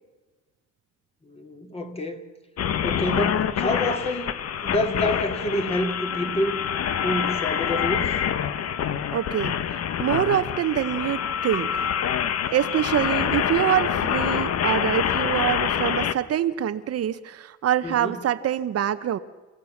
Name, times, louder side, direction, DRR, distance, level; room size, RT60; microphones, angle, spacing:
voice 1, 1.2-2.2 2.8-4.4 4.6-6.6 7.0-8.2 17.8-18.1, left 1 dB, 20° left, 2.3 m, -27 dB
sound 1, 2.6-16.1, left 8 dB, 55° left, 1.1 m, -26 dB
voice 2, 9.1-11.9 12.5-19.2, right 10 dB, 55° right, 0.9 m, -25 dB
29.5 x 16.0 x 7.2 m
cardioid pair, 125°, 29 cm